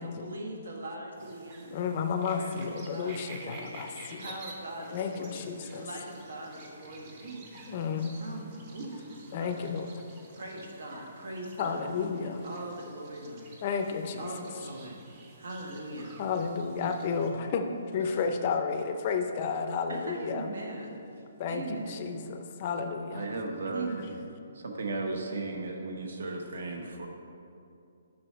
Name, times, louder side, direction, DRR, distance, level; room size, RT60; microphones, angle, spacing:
voice 1, 0.0-1.9 2.3-3.7 4.2-7.4 8.0-9.7 10.3-13.5 14.2-15.0 15.4-16.2 16.7-16.9 18.0-18.2 19.9-22.1 23.7-24.2, right 2 dB, 90° right, 0 dB, 1.5 m, -41 dB
sound 1, 1.2-17.3, right 2 dB, 25° right, 0.7 m, -51 dB
voice 2, 1.7-4.3 4.9-5.9 7.7-8.1 9.3-9.9 11.6-12.4 13.6-14.3 16.2-20.5 21.4-23.3, left 5 dB, 30° left, 6 dB, 0.4 m, -32 dB
voice 3, 23.1-23.9 24.5-27.1, right 3 dB, 65° right, 3 dB, 1.0 m, -35 dB
7.8 x 5.5 x 4.5 m, 2.6 s
hypercardioid pair, 175°, 0 cm